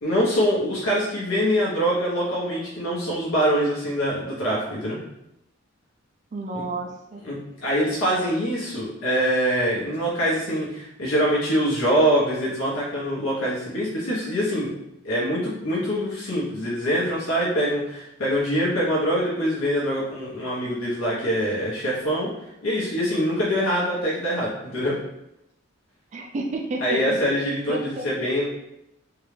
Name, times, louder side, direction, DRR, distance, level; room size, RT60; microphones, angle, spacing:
voice 1, 0.0-5.0 6.5-6.6 7.2-14.7 15.0-22.3 22.6-25.0 26.8-28.4, equal, 75° left, -6 dB, 0.9 m, -24 dB
voice 2, 6.3-7.2 26.1-27.0 27.7-28.1, right 2 dB, 35° right, 2 dB, 0.3 m, -31 dB
3.8 x 2.3 x 3.2 m, 0.84 s
head